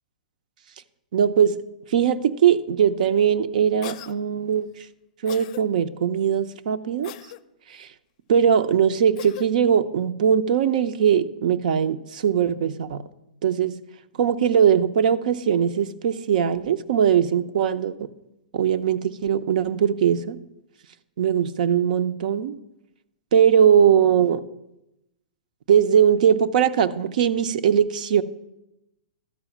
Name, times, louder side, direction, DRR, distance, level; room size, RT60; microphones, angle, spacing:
voice 1, 1.1-1.6 1.9-4.7 5.2-7.1 7.8-7.9 8.3-13.0 13.4-13.7 14.2-18.1 18.5-20.4 21.2-22.5 23.3-24.4 25.7-28.2, right 8 dB, 65° right, 12 dB, 0.6 m, -20 dB
Cough, 3.8-4.1 5.3-5.6 7.0-7.4 9.2-9.5, left 14 dB, 45° left, 0.5 m, -38 dB
12.5 x 4.8 x 7.1 m, 0.88 s
hypercardioid pair, 150°, 5 cm